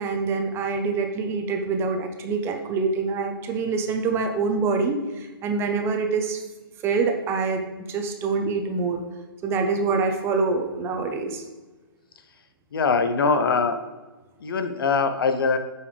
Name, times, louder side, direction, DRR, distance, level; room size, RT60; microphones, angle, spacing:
voice 1, 0.0-6.4 6.8-9.0 9.4-11.4, right 4 dB, 20° right, 5 dB, 0.7 m, -25 dB
voice 2, 12.7-13.8 14.4-15.6, left 4 dB, 65° left, 9 dB, 0.8 m, -22 dB
7.8 x 5.6 x 3.3 m, 1.2 s
hypercardioid pair, 135°, 13 cm